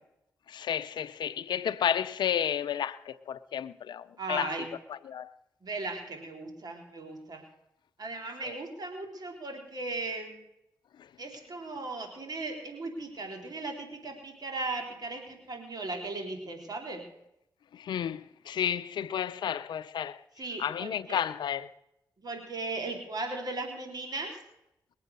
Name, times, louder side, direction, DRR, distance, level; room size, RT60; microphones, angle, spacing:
voice 1, 0.5-4.5 4.9-5.3 8.4-8.6 11.0-11.1 17.7-20.2 20.6-21.7, left 9 dB, 75° left, 0.5 m, -32 dB
voice 2, 4.2-4.7 5.6-7.4 8.0-10.4 11.2-17.0 20.4-21.2 22.2-24.4, right 2 dB, 60° right, 4.0 m, -37 dB
21.5 x 8.3 x 6.7 m
supercardioid pair, 40°, 8 cm